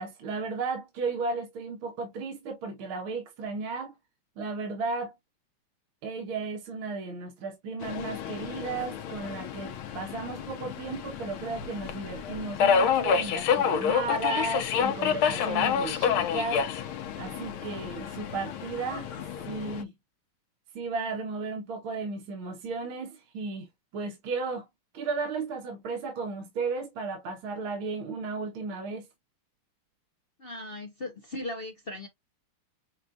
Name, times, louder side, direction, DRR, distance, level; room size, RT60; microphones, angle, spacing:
voice 1, 0.0-3.9 4.4-5.2 6.0-16.6 17.2-19.1 19.5-19.9 20.8-23.7 23.9-24.7 24.9-29.1, right 4 dB, 70° right, 2.0 m, -34 dB
Subway metro underground, 7.8-19.8, left 7 dB, 75° left, 1.6 m, -29 dB
voice 2, 30.4-32.1, left 2 dB, 55° left, 0.6 m, -38 dB
7.2 x 2.4 x 2.7 m
omnidirectional pair, 2.4 m